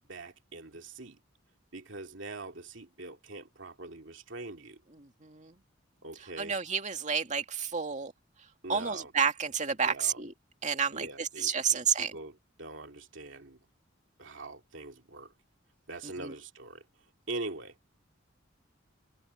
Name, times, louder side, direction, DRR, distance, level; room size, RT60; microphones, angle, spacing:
voice 1, 0.1-1.2 1.7-4.8 6.0-6.6 8.6-9.1 9.8-10.3 10.9-12.3 12.6-13.6 14.2-15.3 15.9-16.8 17.3-17.8, right 2 dB, 70° right, 2.6 m, -43 dB
voice 2, 5.0-5.6 6.4-8.1 8.7-10.3 10.6-12.1 16.0-16.3, right 6 dB, 40° right, 2.3 m, -30 dB
head